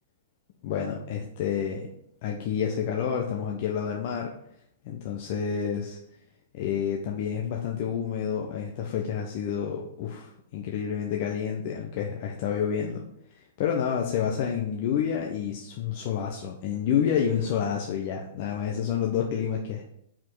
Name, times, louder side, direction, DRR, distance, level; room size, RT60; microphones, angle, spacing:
voice 1, 0.6-1.9 2.2-4.3 4.8-6.0 6.5-13.0 13.6-19.8, left 8 dB, 50° left, 1 dB, 0.9 m, -29 dB
5.6 x 4.9 x 4.8 m, 0.73 s
hypercardioid pair, 110°, 0 cm